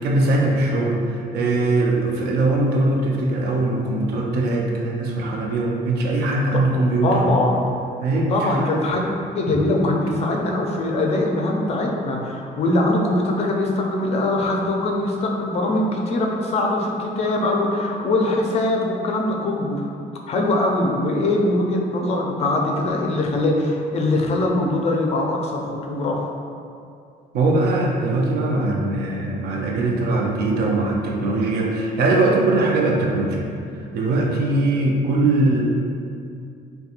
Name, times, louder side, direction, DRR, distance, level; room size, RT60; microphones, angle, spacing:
voice 1, 0.0-7.3 8.0-8.7 9.5-9.6 10.3-10.4 27.3-33.4 33.7-35.6, right 2 dB, 70° right, -1 dB, 0.5 m, -21 dB
voice 2, 7.0-7.6 8.3-9.1 9.3-19.9 20.3-26.3 35.2-35.4, left 2 dB, 40° left, 0 dB, 0.4 m, -22 dB
2.4 x 2.2 x 2.8 m, 2.4 s
cardioid pair, 110°, 17 cm